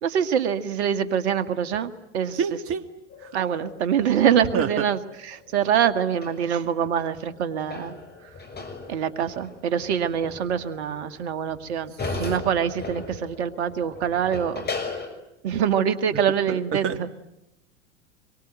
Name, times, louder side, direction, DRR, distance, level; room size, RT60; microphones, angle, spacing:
voice 1, 0.0-2.4 3.3-7.9 8.9-14.7 15.4-17.1, right 8 dB, 65° right, 11 dB, 1.9 m, -25 dB
voice 2, 2.4-2.8 4.5-4.7 12.0-12.2 16.5-17.0, right 6 dB, 40° right, 10 dB, 2.2 m, -27 dB
sound 1, 3.1-7.0 7.3-15.1, left 3 dB, 25° left, 6.4 m, -37 dB
26.0 x 23.0 x 9.2 m, 0.87 s
hypercardioid pair, 85°, 36 cm